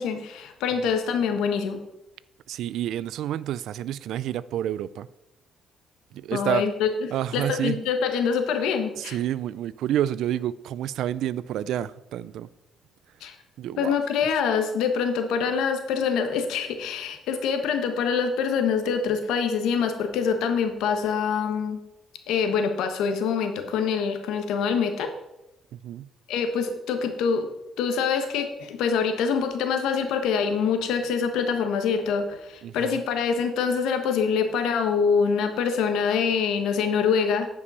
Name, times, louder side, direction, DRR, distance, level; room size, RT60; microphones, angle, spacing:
voice 1, 0.0-1.8 6.3-6.9 7.3-9.2 13.2-13.3 13.8-21.8 22.3-25.1 26.3-27.5 27.8-37.5, left 6 dB, 90° left, 1.2 m, -25 dB
voice 2, 2.5-5.1 6.1-6.6 7.1-7.8 9.0-12.5 13.6-14.0 25.7-26.1 32.6-33.0, right 11 dB, 80° right, 0.3 m, -29 dB
9.7 x 5.4 x 5.5 m
cardioid pair, 90°, 0 cm